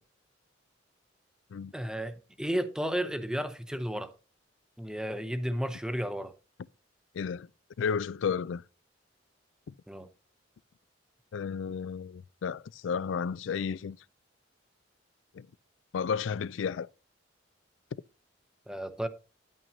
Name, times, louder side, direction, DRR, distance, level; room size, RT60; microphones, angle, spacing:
voice 1, 1.7-4.1 4.8-6.4 9.9-10.1 18.7-19.1, equal, 5° right, 0.7 m, -33 dB
voice 2, 7.1-7.5 7.8-8.6 9.7-9.8 11.3-14.0 15.3-15.5 15.9-16.9, left 6 dB, 75° left, 0.4 m, -32 dB
11.0 x 8.9 x 2.7 m
head